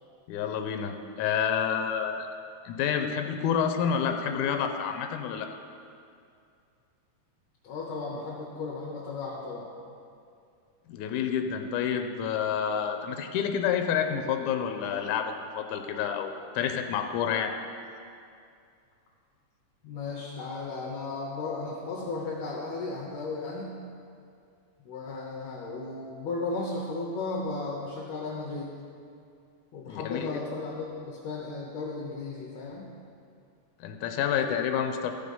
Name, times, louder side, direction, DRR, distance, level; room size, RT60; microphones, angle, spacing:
voice 1, 0.3-2.3 2.7-5.5 10.9-17.5 29.9-30.3 33.8-35.1, left 8 dB, 85° left, 6 dB, 2.1 m, -29 dB
voice 2, 7.6-9.7 19.8-23.8 24.9-28.8 29.7-32.9, left 3 dB, 65° left, -4 dB, 2.1 m, -35 dB
14.5 x 5.0 x 5.4 m, 2.4 s
omnidirectional pair, 3.6 m